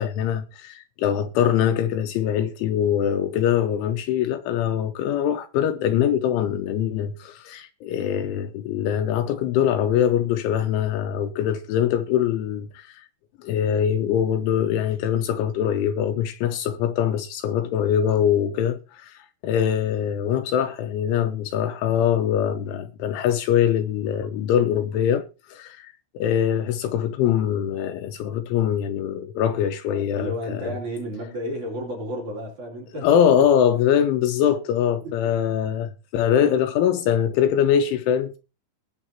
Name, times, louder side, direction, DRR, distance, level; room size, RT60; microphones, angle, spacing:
voice 1, 0.0-13.0 13.4-30.8 33.0-38.4, left 9 dB, 80° left, 3.0 m, -23 dB
voice 2, 30.2-33.1 35.0-35.3, equal, 40° right, 3.7 m, -32 dB
20.0 x 7.1 x 2.9 m
omnidirectional pair, 5.9 m